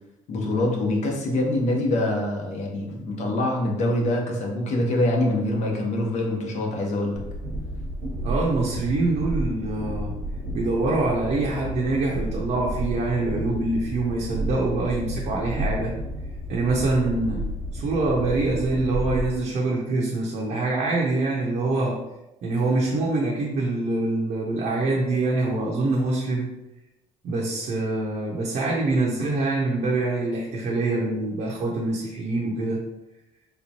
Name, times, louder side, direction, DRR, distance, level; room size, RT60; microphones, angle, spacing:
voice 1, 0.3-7.2, left 1 dB, 60° left, -1 dB, 0.9 m, -24 dB
Train, 7.1-19.3, equal, 85° right, 1.0 m, -31 dB
voice 2, 8.2-10.1 10.5-15.9 16.5-17.4 17.7-22.0 22.4-26.5 27.2-32.8, right 2 dB, 60° right, -3 dB, 0.7 m, -25 dB
3.4 x 2.9 x 2.8 m, 0.94 s
cardioid pair, 135°, 14 cm